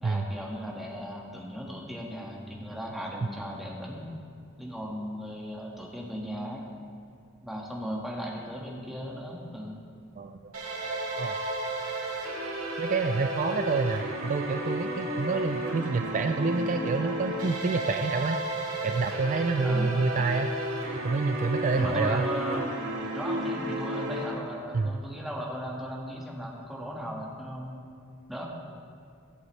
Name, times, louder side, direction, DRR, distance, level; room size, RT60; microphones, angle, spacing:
voice 1, 0.0-4.1 4.6-6.6 7.4-9.8 19.6-20.0 21.7-22.7 23.1-27.8 28.3-28.5, equal, ahead, -3 dB, 1.7 m, -37 dB
voice 2, 10.2-10.5 11.1-11.4 12.8-20.5 21.0-22.3 24.7-24.9, right 4 dB, 35° right, 6 dB, 0.3 m, -28 dB
sound 1, 10.5-24.3, right 1 dB, 80° right, 2.8 m, -32 dB
21.5 x 7.9 x 3.2 m, 2.3 s
head